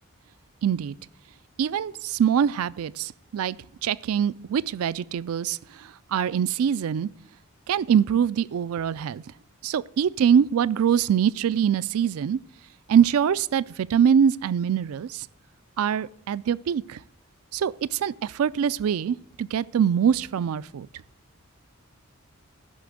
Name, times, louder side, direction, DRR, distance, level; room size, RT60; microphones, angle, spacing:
voice 1, 0.6-1.0 1.6-3.6 3.8-5.6 6.1-7.1 7.7-9.2 9.6-12.4 12.9-15.3 15.8-17.0 17.5-20.9, right 8 dB, 75° right, 0.3 m, -23 dB
15.0 x 5.9 x 6.4 m
head